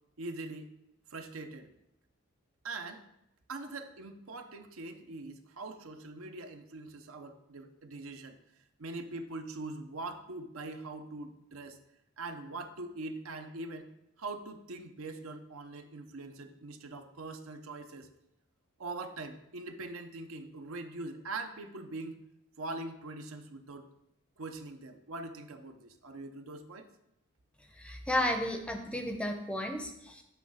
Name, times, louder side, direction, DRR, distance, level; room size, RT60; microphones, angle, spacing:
voice 1, 0.2-0.7 1.1-1.7 2.6-3.0 3.5-8.4 8.8-11.8 12.2-13.9 14.2-18.1 18.8-22.2 22.6-23.9 24.4-26.9, right 2 dB, 75° right, 7 dB, 0.6 m, -42 dB
voice 2, 27.8-30.2, left 1 dB, 5° left, 4 dB, 0.5 m, -33 dB
7.8 x 3.1 x 6.1 m, 0.82 s
head